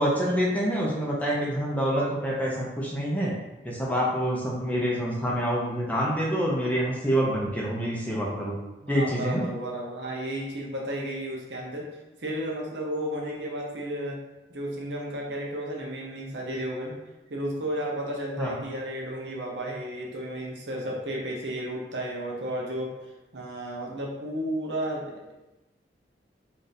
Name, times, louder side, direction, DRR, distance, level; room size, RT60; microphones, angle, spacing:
voice 1, 0.0-3.3 3.6-8.6 8.9-9.4 18.4-18.6, equal, 10° left, -4 dB, 0.6 m, -26 dB
voice 2, 8.8-14.2 14.5-17.0 17.3-22.9 23.3-25.4, right 1 dB, 85° right, -1 dB, 0.7 m, -33 dB
2.6 x 2.5 x 4.0 m, 1.0 s
head